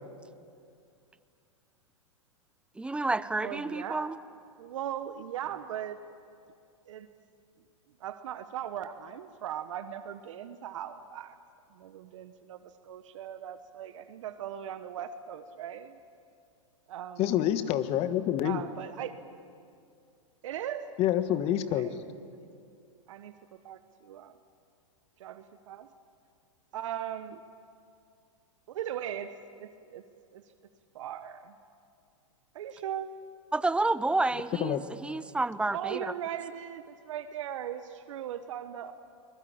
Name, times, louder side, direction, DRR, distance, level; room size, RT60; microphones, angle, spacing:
voice 1, 2.8-4.2 33.5-36.1, right 2 dB, 5° right, 0.7 m, -29 dB
voice 2, 3.4-4.1 4.6-6.0 6.9-7.1 8.0-11.4 11.7-16.0 16.9-17.4 18.4-19.1 20.4-20.9 21.4-21.9 23.1-24.3 25.2-25.9 26.7-27.4 28.7-30.0 30.3-30.4 30.9-31.5 32.5-33.1 35.7-38.9, right 10 dB, 70° right, 1.2 m, -39 dB
voice 3, 17.2-18.6 21.0-21.9 34.6-34.8, left 11 dB, 40° left, 1.4 m, -27 dB
24.0 x 21.0 x 8.7 m
hypercardioid pair, 120°, 17 cm